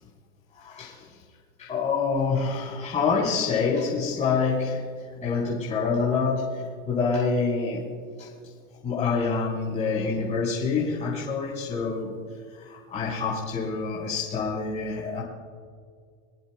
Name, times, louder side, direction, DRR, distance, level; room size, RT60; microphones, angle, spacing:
voice 1, 0.5-1.2 1.6-4.8 5.2-7.8 8.2-8.3 8.8-12.2 12.5-15.2, left 4 dB, 15° left, -7 dB, 3.9 m, -27 dB
26.5 x 18.0 x 2.2 m, 2.1 s
supercardioid pair, 155°, 43 cm